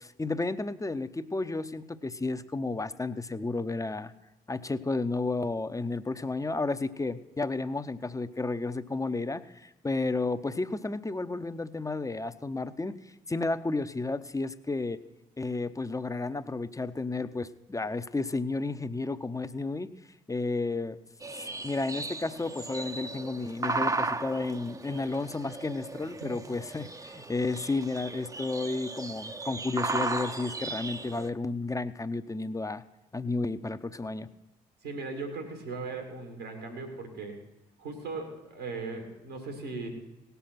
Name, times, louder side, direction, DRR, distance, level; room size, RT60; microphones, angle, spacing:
voice 1, 0.0-4.1 4.5-13.0 13.3-15.0 15.4-19.9 20.3-21.0 21.3-32.8 33.1-34.3, left 3 dB, 15° left, 12 dB, 0.8 m, -32 dB
sound 1, 21.2-31.3, right 3 dB, 15° right, 0.8 m, -36 dB
voice 2, 34.8-37.4 37.8-39.9, right 3 dB, 85° right, 4 dB, 2.6 m, -38 dB
18.0 x 6.9 x 5.9 m, 1.0 s
figure-of-eight pair, 40°, 20 cm